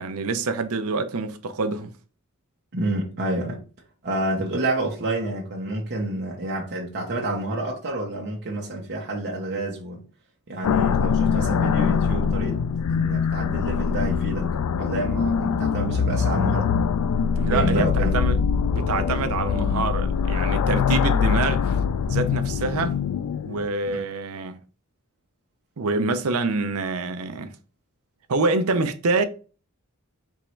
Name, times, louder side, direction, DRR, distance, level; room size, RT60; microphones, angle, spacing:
voice 1, 0.0-1.9 17.4-18.4 18.7-21.8 22.1-23.0 23.4-24.6 25.8-27.6 28.3-29.2, right 3 dB, 70° right, 0.6 m, -26 dB
voice 2, 2.7-3.6 4.0-10.0 10.5-12.6 12.9-16.7 17.5-18.2 23.9-24.0, right 1 dB, 50° right, 0.9 m, -29 dB
sound 1, 10.6-23.7, left 6 dB, 90° left, 0.3 m, -23 dB
3.6 x 3.1 x 4.4 m
head